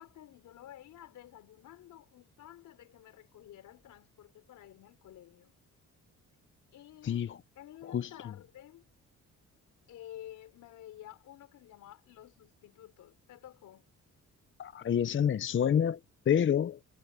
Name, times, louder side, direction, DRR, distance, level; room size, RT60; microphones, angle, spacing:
voice 1, 0.0-5.5 6.7-7.3 7.6-8.9 9.9-13.9, left 12 dB, 80° left, 3.9 m, -51 dB
voice 2, 7.0-7.4 7.9-8.1 14.6-16.0 16.3-16.8, left 9 dB, 40° left, 0.7 m, -28 dB
cardioid pair, 90°, 30 cm